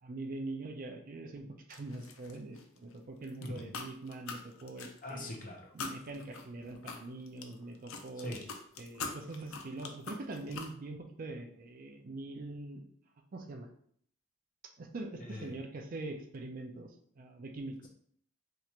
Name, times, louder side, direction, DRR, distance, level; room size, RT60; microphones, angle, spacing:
voice 1, 0.0-5.3 5.7-8.4 8.8-12.8 13.3-13.7 14.8-17.8, right 2 dB, 40° right, 5 dB, 0.4 m, -43 dB
sound 1, 1.7-2.9 3.2-5.4 5.8-10.7, left 4 dB, 80° left, 0.5 m, -43 dB
voice 2, 5.0-5.7 8.2-8.4 15.2-15.6, left 1 dB, 40° left, 0 dB, 0.8 m, -43 dB
2.9 x 2.5 x 4.3 m, 0.63 s
head